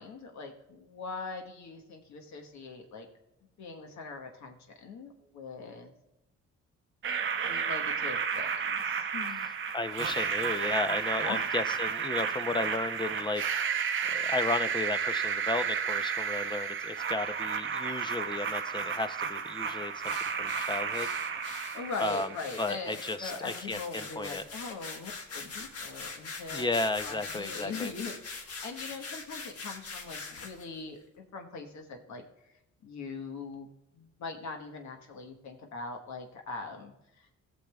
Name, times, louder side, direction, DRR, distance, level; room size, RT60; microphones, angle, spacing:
voice 1, 0.0-3.1 3.6-5.9 7.4-9.5 11.2-11.5 21.5-26.6 27.0-33.7 33.9-37.3, left 4 dB, 70° left, 3 dB, 1.3 m, -41 dB
sound 1, 7.0-23.0, right 6 dB, 40° right, 0.7 m, -32 dB
voice 2, 9.7-20.1 20.4-21.1 22.0-22.3 22.6-24.4 26.5-27.9, left 2 dB, 15° left, 11 dB, 0.6 m, -34 dB
sound 2, 20.0-30.7, left 4 dB, 50° left, 1.4 m, -43 dB
18.0 x 6.6 x 2.3 m, 0.89 s
cardioid pair, 90°, 30 cm